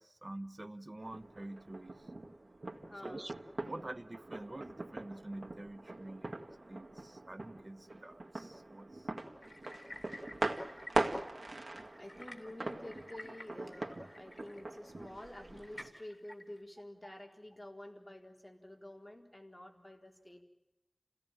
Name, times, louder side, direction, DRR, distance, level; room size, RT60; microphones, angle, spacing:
voice 1, 0.0-2.1 3.0-3.3 3.7-9.1, right 1 dB, 45° right, 11 dB, 1.0 m, -47 dB
sound 1, 1.0-15.9, right 2 dB, 75° right, 2.1 m, -42 dB
voice 2, 2.8-3.4 11.9-20.4, left 1 dB, 25° left, 2 dB, 4.3 m, -50 dB
sound 2, 9.4-16.6, left 1 dB, 40° left, 3.2 m, -53 dB
29.5 x 17.0 x 9.1 m, 0.90 s
wide cardioid pair, 55°, 0 cm